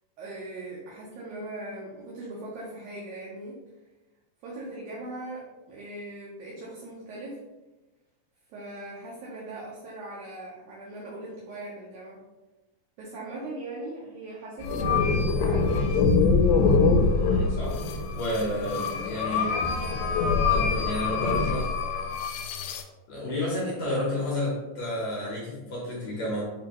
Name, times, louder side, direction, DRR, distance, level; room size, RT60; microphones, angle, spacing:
voice 1, 0.2-3.6 4.4-7.4 8.5-12.2 13.0-16.0, right 2 dB, 70° right, -5 dB, 1.9 m, -39 dB
sound 1, 14.6-22.8, left 4 dB, 90° left, 2.3 m, -24 dB
voice 2, 17.1-19.6 20.5-21.7 23.1-26.4, left 1 dB, 70° left, -5 dB, 1.8 m, -31 dB
6.6 x 2.8 x 2.9 m, 1.1 s
omnidirectional pair, 4.0 m